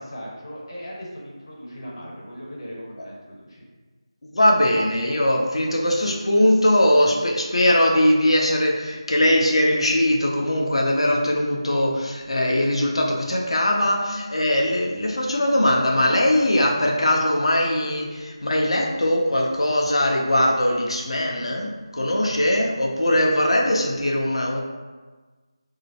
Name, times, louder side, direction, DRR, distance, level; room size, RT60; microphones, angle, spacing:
voice 1, 0.0-3.6, equal, 55° left, -4 dB, 1.2 m, -38 dB
voice 2, 4.2-24.6, left 1 dB, 75° left, -1 dB, 0.7 m, -21 dB
3.2 x 2.8 x 2.8 m, 1.3 s
figure-of-eight pair, 170°, 3 cm